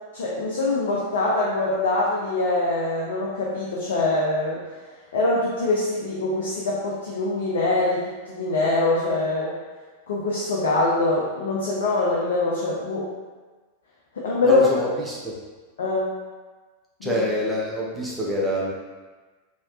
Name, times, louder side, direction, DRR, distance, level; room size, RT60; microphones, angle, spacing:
voice 1, 0.1-4.6 5.1-9.5 10.1-13.1 14.1-14.6 15.8-16.1 17.0-17.2, left 2 dB, 60° left, -5 dB, 0.6 m, -23 dB
voice 2, 14.4-15.4 17.0-18.7, left 1 dB, 5° right, -6 dB, 0.8 m, -26 dB
4.2 x 2.9 x 2.5 m, 1.3 s
figure-of-eight pair, 90°, 0 cm